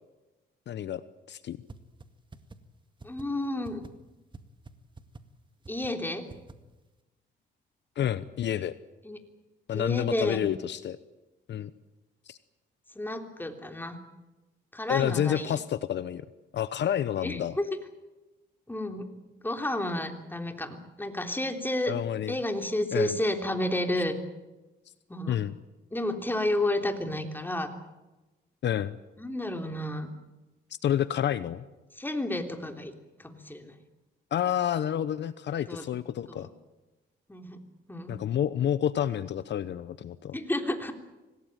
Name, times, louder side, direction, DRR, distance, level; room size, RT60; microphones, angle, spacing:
voice 1, 0.7-1.0 1.3-1.6 8.0-8.8 9.7-11.0 11.5-11.7 12.3-12.4 14.9-16.2 16.5-17.6 21.9-22.4 22.9-23.2 25.3-25.6 28.6-29.0 30.8-31.6 34.3-36.5 38.1-40.3, left 10 dB, 60° left, 15 dB, 0.9 m, -29 dB
sound 1, 1.7-1.8 2.0-2.1 2.3-2.6 3.0-3.2 3.6-3.9 4.3-4.4 4.7-4.8 5.0-5.2 5.6-5.9 6.3-6.5, right 3 dB, 25° right, 2.1 m, -45 dB
voice 2, 3.0-3.8 5.7-6.2 9.0-9.2 9.7-10.4 12.9-14.0 14.7-15.6 17.2-17.6 18.7-19.1 19.4-21.9 22.3-24.1 25.1-25.4 25.9-27.7 29.2-30.1 32.0-32.9 33.2-33.7 35.7-35.9 36.3-36.5 37.3-37.6 37.9-38.2 40.3-40.9, left 1 dB, 10° left, 5 dB, 3.4 m, -31 dB
25.5 x 18.5 x 9.1 m, 1.1 s
cardioid pair, 90°, 20 cm